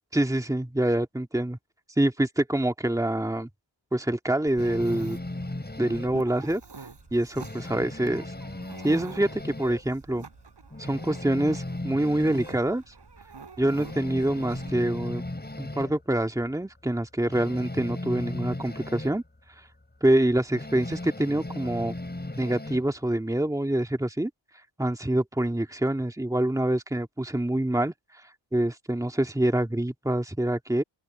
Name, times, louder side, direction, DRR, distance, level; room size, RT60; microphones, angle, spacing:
voice 1, 0.1-1.6 2.0-3.5 3.9-5.2 5.8-6.6 7.1-8.3 8.8-10.3 10.9-12.8 13.6-15.2 15.6-19.2 20.0-22.0 22.4-24.3 24.8-27.9 28.5-30.8, right 1 dB, 5° right, 1.8 m, -26 dB
Dog, 4.5-14.7, right 5 dB, 55° right, 6.1 m, -47 dB
sound 1, 4.6-6.2 6.6-6.8 7.1-9.9 10.2-10.3 10.7-12.6 13.1-13.2 13.6-16.0 17.3-19.2 20.5-22.9, left 2 dB, 20° left, 6.0 m, -37 dB
open air
wide cardioid pair, 95°, 48 cm